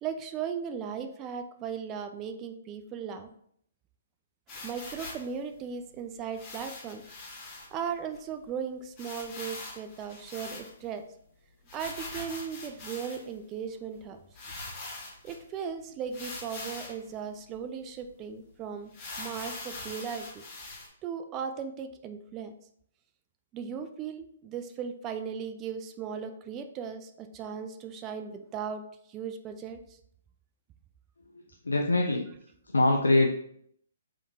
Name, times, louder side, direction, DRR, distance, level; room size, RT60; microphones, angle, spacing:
voice 1, 0.0-3.3 4.5-7.0 7.7-11.0 11.7-14.2 15.2-18.9 19.2-20.4 21.0-22.5 23.5-28.8 29.1-30.0, right 7 dB, 25° right, 7 dB, 0.3 m, -37 dB
sound 1, 4.5-5.3 6.3-7.7 8.1-8.2 8.4-8.5 9.0-11.0 11.7-13.4 14.0-14.1 14.3-15.4 16.1-17.0 17.5-17.6 18.0-18.1 18.9-20.9, left 2 dB, 30° left, 1.4 m, -42 dB
voice 2, 31.7-32.3 32.7-33.3, left 2 dB, 85° left, 2 dB, 0.4 m, -23 dB
3.6 x 3.4 x 2.7 m, 0.68 s
figure-of-eight pair, 130°, 0 cm